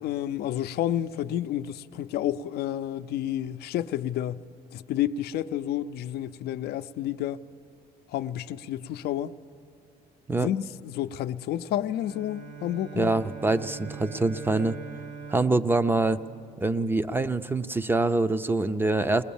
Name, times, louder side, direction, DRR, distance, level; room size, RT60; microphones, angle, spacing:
voice 1, 0.0-4.4 4.7-7.4 8.1-9.3 10.4-13.1, left 11 dB, 70° left, 0.5 m, -30 dB
Bowed string instrument, 11.9-17.2, right 5 dB, 55° right, 1.2 m, -42 dB
voice 2, 13.0-14.8 15.3-16.2 16.6-19.2, right 2 dB, 10° right, 0.5 m, -25 dB
21.0 x 20.5 x 7.1 m
cardioid pair, 110°, 17 cm